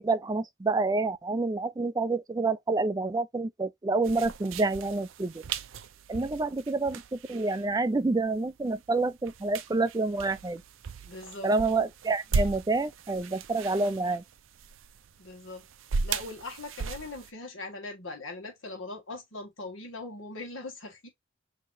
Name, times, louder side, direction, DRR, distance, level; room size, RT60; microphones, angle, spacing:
voice 1, 0.0-5.4 6.1-10.6 11.4-14.2, right 3 dB, 20° right, 0.4 m, -28 dB
sound 1, 4.0-17.3, right 4 dB, 75° right, 0.5 m, -37 dB
voice 2, 11.0-11.5 15.2-15.7 16.0-21.1, left 2 dB, 70° left, 1.8 m, -40 dB
5.6 x 2.9 x 2.7 m
head